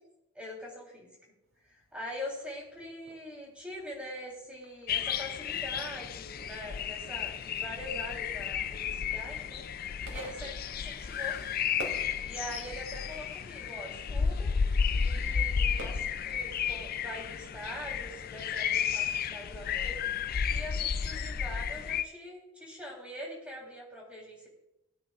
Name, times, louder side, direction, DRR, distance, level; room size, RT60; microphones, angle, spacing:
voice 1, 0.3-1.1 1.6-9.6 10.1-11.4 12.2-14.5 14.9-20.0 20.5-24.5, left 1 dB, 5° right, -3 dB, 3.6 m, -43 dB
Fireworks, 1.4-16.5, right 1 dB, 80° right, 3.0 m, -51 dB
sound 1, 4.9-22.0, left 7 dB, 45° left, 0.4 m, -32 dB
19.0 x 9.1 x 2.5 m, 0.90 s
head